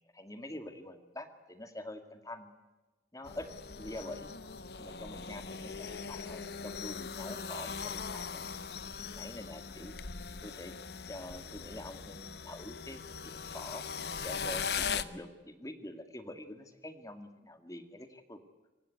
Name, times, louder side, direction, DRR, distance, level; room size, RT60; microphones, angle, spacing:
voice 1, 0.1-2.6 3.1-3.5 3.8-4.3 4.8-8.4 9.2-9.9 10.4-10.8 11.1-13.8 14.2-18.4, left 1 dB, 20° left, 8 dB, 2.1 m, -46 dB
sound 1, 3.2-15.0, left 6 dB, 65° left, 1.0 m, -40 dB
27.0 x 16.5 x 9.4 m, 1.2 s
head